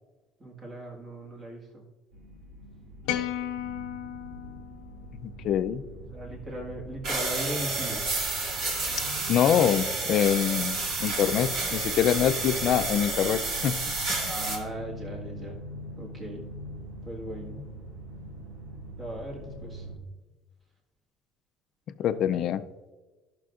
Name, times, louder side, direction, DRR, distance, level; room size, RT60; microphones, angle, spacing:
voice 1, 0.4-1.8 6.1-8.0 14.3-15.6 16.0-16.4 17.0-17.6 19.0-19.9 22.1-22.2, right 1 dB, 20° right, -1 dB, 1.5 m, -38 dB
sound 1, 2.1-20.0, right 1 dB, 85° right, 2.0 m, -43 dB
sound 2, 3.0-5.4, left 11 dB, 85° left, 0.6 m, -34 dB
voice 2, 5.2-5.8 9.3-13.8 14.2-14.3 22.0-22.6, left 9 dB, 45° left, 12 dB, 0.4 m, -25 dB
sound 3, 7.0-14.6, right 3 dB, 55° right, 2.2 m, -30 dB
14.5 x 6.1 x 2.4 m, 1.2 s
cardioid pair, 170°, 0 cm